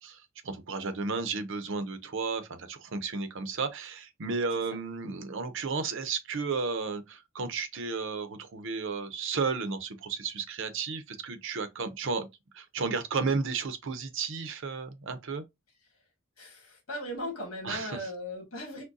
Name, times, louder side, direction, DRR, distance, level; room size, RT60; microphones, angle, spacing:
voice 1, 0.0-12.3 12.5-15.4 17.6-18.1, right 4 dB, 60° right, 0.7 m, -33 dB
voice 2, 16.4-18.8, left 1 dB, 70° left, 1.6 m, -38 dB
6.2 x 2.2 x 2.6 m
head